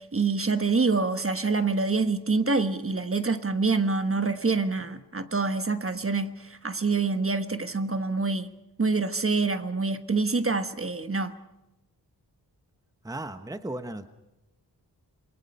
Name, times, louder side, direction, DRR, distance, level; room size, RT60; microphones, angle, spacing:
voice 1, 0.0-8.5 8.8-11.4, right 4 dB, 35° right, 1.3 m, -26 dB
voice 2, 13.0-14.1, right 1 dB, 10° right, 1.1 m, -35 dB
28.0 x 23.0 x 5.6 m
wide cardioid pair, 110°, 39 cm